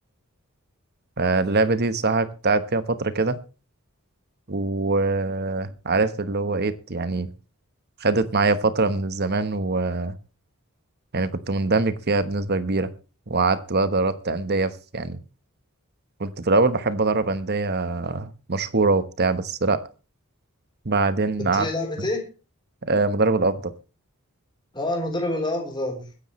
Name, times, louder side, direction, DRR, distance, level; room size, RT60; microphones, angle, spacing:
voice 1, 1.2-3.4 4.5-7.3 8.0-10.1 11.1-12.9 13.3-15.2 16.2-19.8 20.8-21.7 22.9-23.7, right 3 dB, 50° right, 12 dB, 1.2 m, -23 dB
voice 2, 21.4-22.3 24.7-26.1, left 1 dB, 20° left, 1 dB, 3.8 m, -27 dB
21.5 x 10.0 x 3.2 m, 0.33 s
head